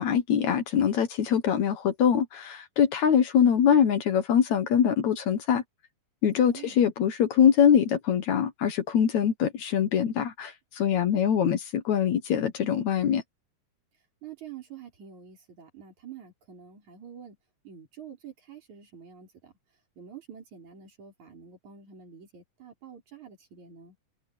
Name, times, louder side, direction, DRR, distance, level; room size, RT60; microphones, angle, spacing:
voice 1, 0.0-5.6 6.2-11.6 11.9-13.2, left 8 dB, 65° left, 2.4 m, -23 dB
voice 2, 6.5-6.8 11.1-11.5 14.2-17.4 17.6-19.5 20.0-24.0, right 8 dB, 60° right, 5.9 m, -47 dB
omnidirectional pair, 3.8 m